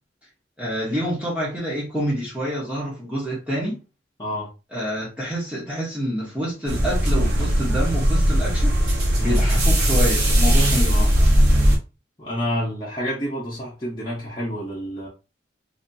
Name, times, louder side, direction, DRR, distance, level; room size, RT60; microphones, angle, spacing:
voice 1, 0.6-3.8 4.7-8.7 9.2-11.1, equal, 5° right, 1.0 m, -27 dB
sound 1, 6.7-11.8, equal, 60° right, 1.1 m, -18 dB
voice 2, 12.2-15.1, equal, 25° left, 1.0 m, -29 dB
2.8 x 2.8 x 2.7 m
head